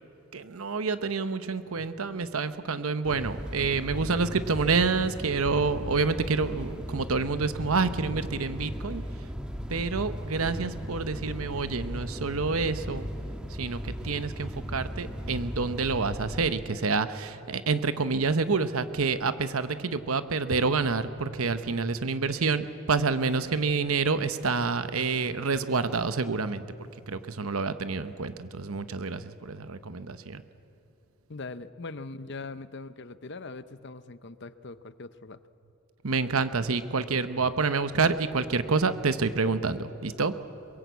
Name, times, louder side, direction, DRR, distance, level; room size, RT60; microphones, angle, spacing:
voice 1, 0.3-9.3 9.7-13.1 13.5-26.6 27.0-30.4 36.0-40.3, right 4 dB, 75° right, 11 dB, 1.0 m, -28 dB
sound 1, 3.0-16.5, equal, 5° right, 1.3 m, -37 dB
voice 2, 31.3-35.4, left 3 dB, 50° left, 13 dB, 0.7 m, -41 dB
23.0 x 22.5 x 8.3 m, 2.8 s
head